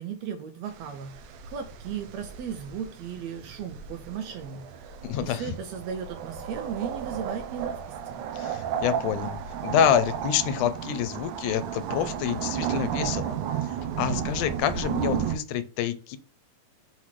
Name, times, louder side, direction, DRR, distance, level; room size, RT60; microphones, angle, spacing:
voice 1, 0.0-8.2, right 7 dB, 75° right, 8 dB, 1.8 m, -36 dB
sound 1, 0.7-15.4, right 8 dB, 90° right, 2.2 m, -33 dB
voice 2, 5.0-5.5 8.3-13.4 13.6-13.7 14.0-16.2, left 9 dB, 85° left, 11 dB, 2.1 m, -27 dB
5.9 x 3.1 x 5.8 m, 0.38 s
omnidirectional pair, 3.4 m